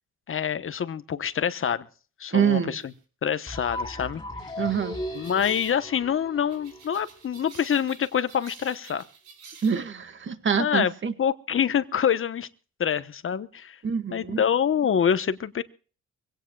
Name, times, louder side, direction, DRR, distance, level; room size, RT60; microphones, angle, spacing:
voice 1, 0.3-1.9 2.2-2.8 3.2-4.5 5.1-9.1 10.6-10.9 11.2-12.5 12.8-13.8 14.1-15.6, left 8 dB, 45° left, 1.1 m, -26 dB
voice 2, 2.3-2.8 4.6-5.0 9.6-11.1 13.8-14.4, right 7 dB, 40° right, 1.8 m, -25 dB
sound 1, 2.8-3.0 5.1-5.8 6.5-9.8, right 6 dB, 85° right, 3.6 m, -49 dB
sound 2, 3.5-7.4, left 1 dB, 15° left, 2.9 m, -37 dB
24.0 x 17.0 x 2.4 m
cardioid pair, 90°, 30 cm